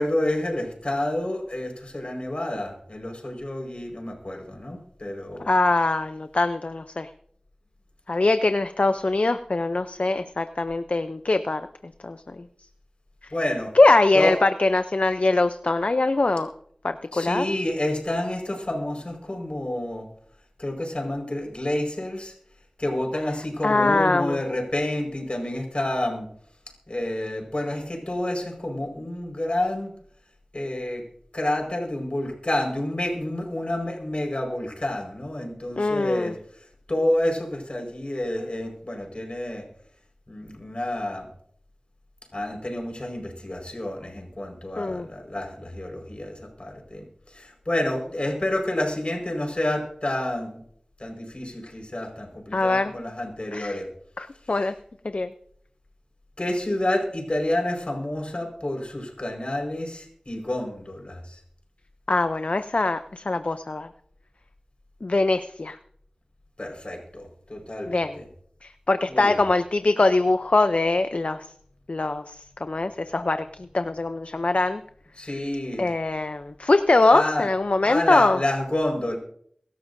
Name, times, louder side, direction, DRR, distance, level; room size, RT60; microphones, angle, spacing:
voice 1, 0.0-5.5 13.3-13.7 14.1-14.4 17.1-20.0 20.6-22.3 22.8-26.3 26.9-29.9 30.5-31.0 31.3-36.3 36.9-39.6 40.3-41.3 42.3-47.0 47.3-50.6 51.0-53.9 56.4-61.3 66.6-68.3 69.1-69.4 75.2-75.9 77.1-77.5 77.8-79.2, left 1 dB, 55° left, 2 dB, 5.0 m, -29 dB
voice 2, 5.5-7.1 8.1-11.6 12.0-12.2 13.7-16.5 16.8-17.4 23.6-24.4 35.8-36.4 44.8-45.1 52.5-52.9 53.5-53.8 54.2-54.7 55.1-55.3 62.1-63.9 65.0-65.8 67.9-68.2 68.6-71.5 71.9-72.2 72.6-73.4 73.7-74.8 75.8-78.4, left 2 dB, 70° left, 9 dB, 0.6 m, -22 dB
24.0 x 12.5 x 2.7 m, 0.65 s
wide cardioid pair, 40°, 2 cm